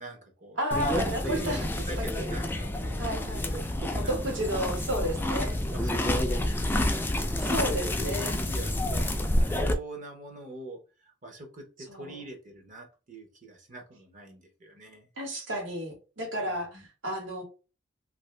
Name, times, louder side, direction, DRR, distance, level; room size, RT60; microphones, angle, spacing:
voice 1, 0.0-3.0 3.3-4.2 5.3-15.1 16.5-16.9, right 3 dB, 40° right, 0.7 m, -43 dB
voice 2, 0.6-1.7 2.0-2.3 3.0-3.5 3.9-5.6 6.0-6.5 7.4-8.4 11.9-12.2 15.2-17.4, equal, 75° right, 1.4 m, -32 dB
sound 1, 0.7-9.7, left 1 dB, 10° left, 0.3 m, -29 dB
2.8 x 2.6 x 3.2 m
head